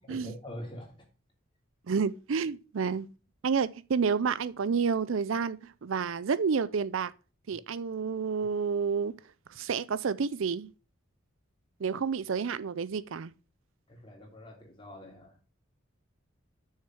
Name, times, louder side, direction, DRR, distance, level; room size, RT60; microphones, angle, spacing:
voice 1, 0.0-1.1 13.9-15.4, equal, 25° left, 2.9 m, -45 dB
voice 2, 1.9-3.1 3.4-7.1 7.5-9.1 9.5-10.7 11.8-13.3, right 5 dB, 70° right, 0.4 m, -29 dB
6.6 x 6.5 x 6.1 m
head